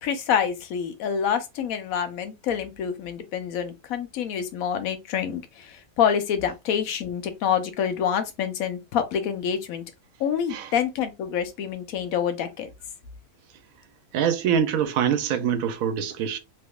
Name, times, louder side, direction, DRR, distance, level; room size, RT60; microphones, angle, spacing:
voice 1, 0.0-9.8 10.2-12.7, left 8 dB, 70° left, 1.0 m, -27 dB
voice 2, 14.1-16.4, right 8 dB, 70° right, 1.0 m, -24 dB
3.3 x 2.9 x 2.3 m
omnidirectional pair, 1.6 m